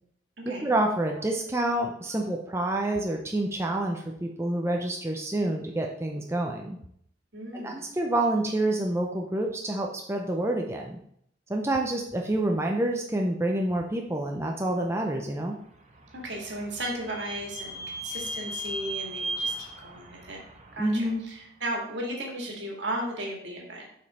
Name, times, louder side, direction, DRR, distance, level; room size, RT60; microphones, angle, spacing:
voice 1, 0.5-6.8 7.5-11.0 11.5-15.6 20.8-21.2, right 1 dB, 15° right, 1 dB, 0.5 m, -28 dB
voice 2, 7.3-7.9 16.1-20.4 20.7-23.9, right 1 dB, 65° right, 0 dB, 1.9 m, -35 dB
Vehicle / Squeak, 15.7-21.3, right 1 dB, 35° right, 1.0 m, -37 dB
6.6 x 5.3 x 4.2 m, 0.69 s
head